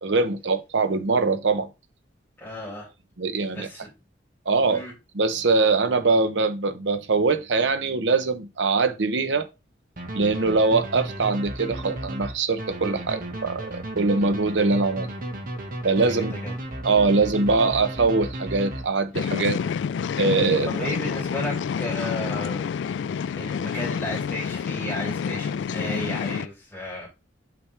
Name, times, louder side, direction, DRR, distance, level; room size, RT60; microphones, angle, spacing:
voice 1, 0.0-1.7 3.2-3.7 4.5-4.8 5.1-9.5 10.1-15.1 15.8-16.4 16.8-19.6 20.2-20.8, right 3 dB, 80° right, 0.8 m, -22 dB
voice 2, 2.4-2.9 3.5-3.9 4.7-4.9 16.0-16.5 19.5-19.7 20.7-22.7 23.4-27.1, left 1 dB, 10° left, 3.4 m, -34 dB
sound 1, 10.0-19.3, right 1 dB, 50° right, 1.5 m, -34 dB
sound 2, 19.1-26.5, left 7 dB, 75° left, 0.3 m, -28 dB
6.0 x 6.0 x 3.3 m
head